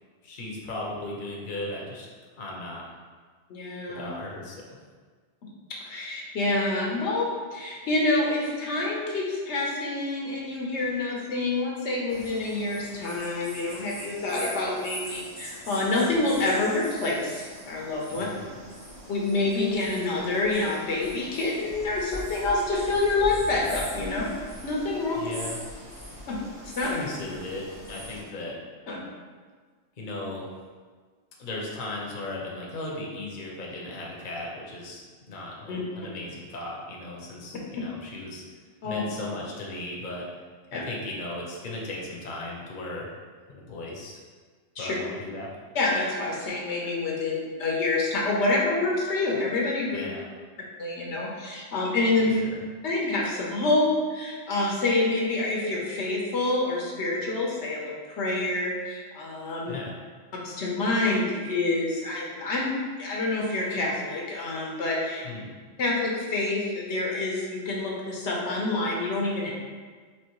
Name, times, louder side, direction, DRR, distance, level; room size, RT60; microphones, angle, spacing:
voice 1, 0.2-2.1 2.4-2.8 4.0-4.8 18.1-18.6 25.2-25.6 26.8-28.6 30.0-30.5 31.4-38.4 38.8-40.3 40.7-43.1 43.5-44.2 44.8-45.5 49.9-50.3 52.2-52.6 59.7-59.9 65.2-65.5, left 2 dB, 50° left, -3 dB, 0.8 m, -36 dB
voice 2, 3.5-4.1 5.7-18.3 19.1-24.3 24.6-25.3 26.3-26.4 26.8-27.0 28.9-29.0 35.7-35.8 38.8-39.0 40.7-40.8 44.8-44.9 45.7-50.0 50.8-52.3 52.8-59.7 60.4-65.2 65.8-69.5, left 2 dB, 85° left, -2 dB, 1.1 m, -27 dB
sound 1, 12.1-28.2, equal, 60° right, 1.8 m, -42 dB
4.5 x 2.9 x 3.0 m, 1.5 s
omnidirectional pair, 1.1 m